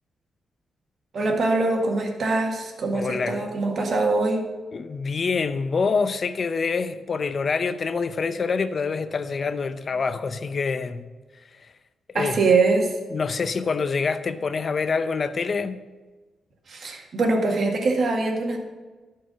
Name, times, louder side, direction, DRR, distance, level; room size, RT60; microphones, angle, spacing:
voice 1, 1.1-4.4 12.1-12.9 16.7-18.6, right 3 dB, 60° right, 1.9 m, -23 dB
voice 2, 2.9-3.5 4.7-11.1 11.5-11.7 12.1-12.4 13.1-15.8, left 5 dB, 50° left, 0.6 m, -26 dB
12.0 x 4.8 x 6.7 m
cardioid pair, 90°, 0 cm